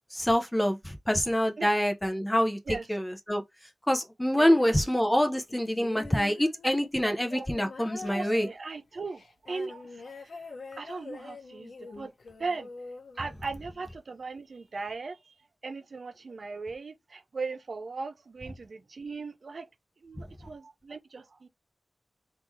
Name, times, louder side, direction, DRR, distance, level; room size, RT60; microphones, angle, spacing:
voice 1, 0.1-3.4 3.9-8.5, equal, 10° left, 0.9 m, -26 dB
sound 1, 5.5-13.9 14.9-15.0, left 3 dB, 70° left, 1.1 m, -45 dB
voice 2, 7.0-7.5 8.1-10.5 10.8-12.1 12.4-12.7 13.2-15.4 15.6-19.7 20.0-21.5, right 4 dB, 60° right, 0.6 m, -38 dB
3.8 x 2.9 x 4.7 m
wide cardioid pair, 120°, 0 cm